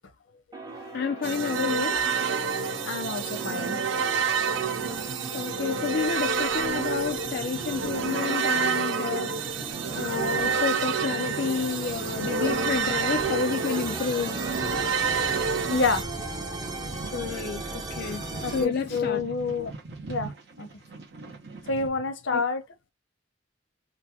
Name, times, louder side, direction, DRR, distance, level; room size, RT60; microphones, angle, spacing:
sound 1, 0.5-18.6, right 2 dB, 20° right, 0.7 m, -38 dB
voice 1, 0.9-2.0 5.3-9.4 10.0-14.4 17.1-19.2 19.6-19.7 22.3-22.4, left 6 dB, 55° left, 0.3 m, -30 dB
sound 2, 1.2-16.0, right 5 dB, 85° right, 0.5 m, -28 dB
voice 2, 2.8-3.8 15.7-16.1 18.4-19.7 20.1-20.3 20.6-20.7 21.7-22.6, left 4 dB, 85° left, 0.8 m, -28 dB
sound 3, 3.2-21.9, right 3 dB, 60° right, 1.0 m, -44 dB
3.9 x 2.0 x 2.7 m
head